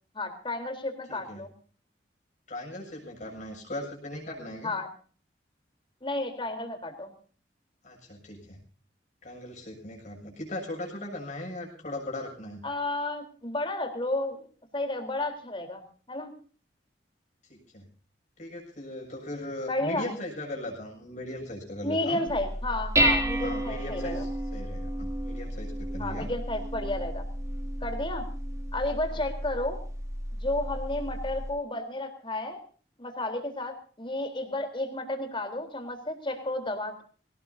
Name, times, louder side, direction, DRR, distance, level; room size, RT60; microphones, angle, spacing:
voice 1, 0.1-1.5 4.6-4.9 6.0-7.1 12.6-14.4 14.7-16.3 19.7-20.1 21.8-24.2 26.0-27.2 27.8-28.3 28.7-29.8 30.3-32.6 33.0-37.0, left 2 dB, 30° left, 5 dB, 3.7 m, -32 dB
voice 2, 1.1-1.4 2.5-4.7 7.8-8.6 9.2-12.6 17.4-17.9 18.4-22.2 23.3-26.3 29.1-29.2, left 1 dB, 45° left, 0 dB, 6.9 m, -38 dB
Dishes pots and pans, 22.3-31.5, equal, 20° right, 2.6 m, -31 dB
24.0 x 18.0 x 2.7 m, 0.42 s
head